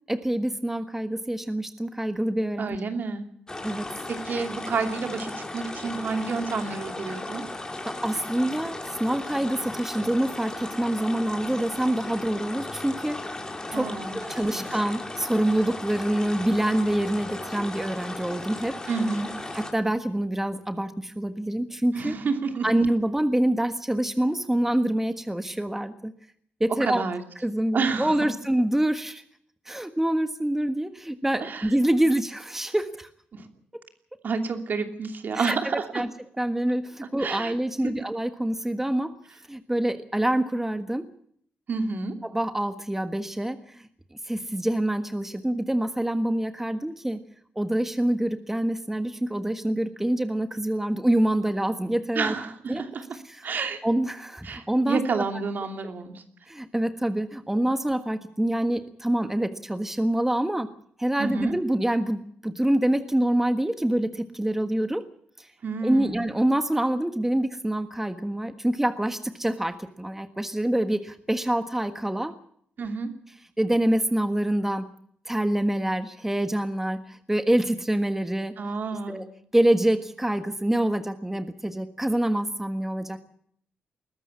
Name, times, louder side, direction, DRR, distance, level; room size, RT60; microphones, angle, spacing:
voice 1, 0.1-2.8 3.6-3.9 7.9-13.4 13.7-18.8 19.5-22.2 22.6-26.1 26.6-27.0 27.4-29.2 29.7-33.1 35.3-36.1 36.4-39.1 39.5-41.1 42.2-43.9 44.2-47.2 47.5-52.3 52.7-52.8 53.1-53.4 53.8-55.2 56.5-60.7 61.0-65.0 65.4-65.5 65.8-72.4 73.6-74.9 75.2-78.5 79.1-79.2 79.5-83.2, right 1 dB, 10° right, 9 dB, 1.5 m, -26 dB
voice 2, 2.6-3.3 4.2-7.4 13.7-14.7 18.9-19.3 21.9-22.7 26.8-27.2 27.7-28.3 31.4-31.7 33.3-33.4 34.2-36.0 37.2-37.9 41.7-42.1 52.1-53.0 53.4-53.8 54.4-56.2 61.2-61.5 65.6-66.2 72.8-73.1 78.6-79.2, right 4 dB, 55° right, 6 dB, 2.8 m, -29 dB
sound 1, 3.5-19.7, left 2 dB, 20° left, 3.8 m, -36 dB
21.0 x 13.5 x 9.7 m, 0.64 s
cardioid pair, 65°, 4 cm